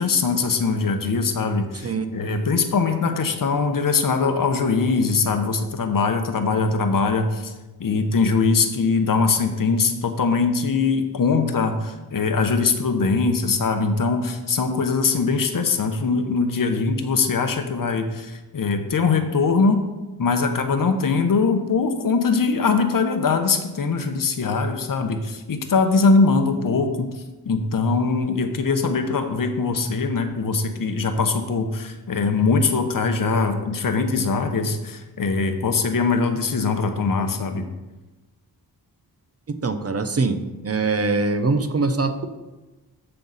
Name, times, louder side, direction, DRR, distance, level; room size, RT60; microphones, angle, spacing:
voice 1, 0.0-7.5 7.8-19.8 20.2-27.1 27.4-37.6, left 4 dB, 55° left, 6 dB, 1.0 m, -22 dB
voice 2, 39.5-40.4 40.6-42.3, right 3 dB, 40° right, 8 dB, 0.7 m, -23 dB
14.0 x 5.7 x 4.1 m, 1.1 s
wide cardioid pair, 130°, 39 cm